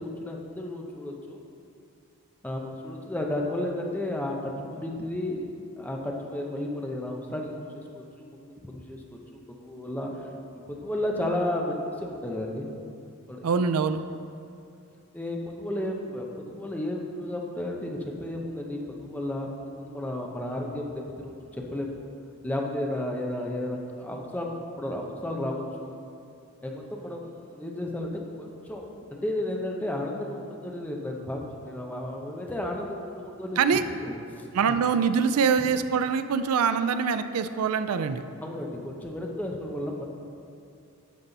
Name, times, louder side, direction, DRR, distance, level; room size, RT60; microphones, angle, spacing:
voice 1, 0.0-1.4 2.4-5.4 5.8-10.3 10.7-12.7 13.3-13.4 15.1-22.1 22.4-25.9 26.6-33.6 34.0-34.5 35.6-35.7 38.4-40.1, left 1 dB, 5° left, 0 dB, 0.7 m, -33 dB
voice 2, 13.4-14.0 33.6-33.8 34.5-38.2, right 6 dB, 90° right, 11 dB, 0.4 m, -24 dB
11.0 x 5.5 x 4.0 m, 2.5 s
head